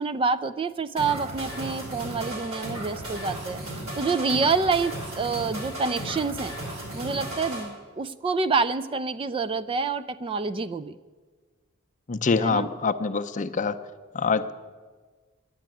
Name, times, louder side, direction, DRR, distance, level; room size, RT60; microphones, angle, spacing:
voice 1, 0.0-3.6 4.0-6.5 6.9-11.0 12.4-12.7, right 4 dB, 25° right, 14 dB, 0.3 m, -27 dB
sound 1, 1.0-7.6, right 1 dB, 65° right, 4.6 m, -35 dB
voice 2, 12.1-13.8 14.1-14.5, left 4 dB, 35° left, 9 dB, 0.6 m, -25 dB
10.5 x 10.0 x 9.0 m, 1.4 s
head